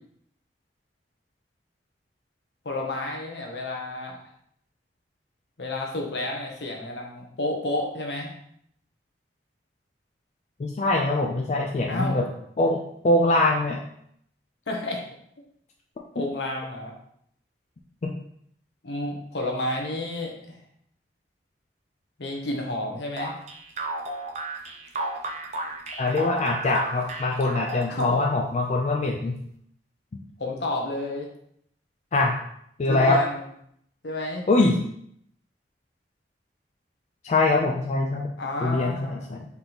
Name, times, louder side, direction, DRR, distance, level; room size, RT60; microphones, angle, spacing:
voice 1, 2.6-4.2 5.6-8.3 11.9-12.2 14.7-15.0 16.1-16.9 18.8-20.6 22.2-23.3 27.9-28.2 30.4-31.3 32.9-33.5 34.0-34.5 38.4-39.3, left 2 dB, 75° left, 0 dB, 0.9 m, -31 dB
voice 2, 10.6-12.3 12.6-13.8 18.0-18.1 26.0-29.4 32.1-32.4 32.8-33.2 34.5-34.8 37.2-38.3 38.6-39.4, left 2 dB, 40° left, 1 dB, 0.4 m, -23 dB
sound 1, 23.2-28.5, right 2 dB, 40° right, 0.6 m, -33 dB
3.5 x 2.9 x 3.9 m, 0.70 s
head